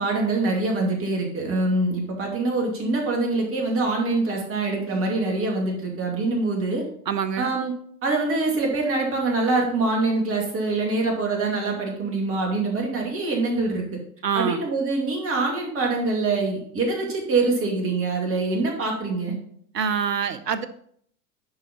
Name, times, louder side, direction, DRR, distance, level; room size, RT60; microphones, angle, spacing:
voice 1, 0.0-6.8 7.4-7.7 8.0-14.0 14.3-19.4, right 3 dB, 30° right, 1 dB, 2.6 m, -24 dB
voice 2, 7.1-7.5 14.2-14.6 19.7-20.7, right 7 dB, 80° right, 13 dB, 0.9 m, -25 dB
10.5 x 4.8 x 4.2 m, 0.64 s
figure-of-eight pair, 90°, 48 cm